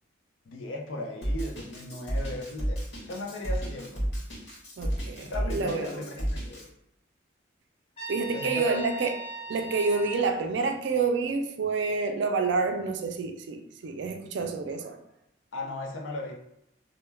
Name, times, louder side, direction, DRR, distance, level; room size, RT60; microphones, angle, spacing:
voice 1, 0.5-2.8 3.1-4.0 5.2-6.6 8.3-8.8 9.6-9.7 15.5-16.3, left 2 dB, 90° left, 1 dB, 0.5 m, -37 dB
Drum kit, 1.2-6.6, equal, 60° left, 1.1 m, -31 dB
voice 2, 4.8-6.0 8.1-9.2 9.5-15.0, right 4 dB, 70° right, 5 dB, 0.3 m, -28 dB
Trumpet, 8.0-10.3, right 1 dB, 30° left, 0.6 m, -39 dB
2.1 x 2.1 x 3.2 m, 0.77 s
head